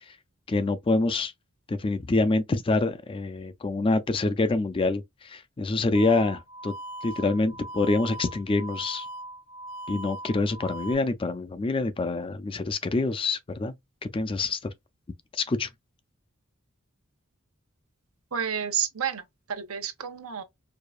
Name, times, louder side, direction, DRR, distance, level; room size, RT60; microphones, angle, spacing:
voice 1, 0.5-1.3 1.7-6.7 7.0-9.0 9.9-13.7 14.1-14.7 15.3-15.7, left 3 dB, 25° left, 0.4 m, -26 dB
sound 1, 5.9-10.9, right 1 dB, 65° left, 0.9 m, -40 dB
voice 2, 18.3-19.2 19.5-20.4, right 8 dB, 85° right, 0.9 m, -30 dB
4.7 x 2.3 x 2.4 m
head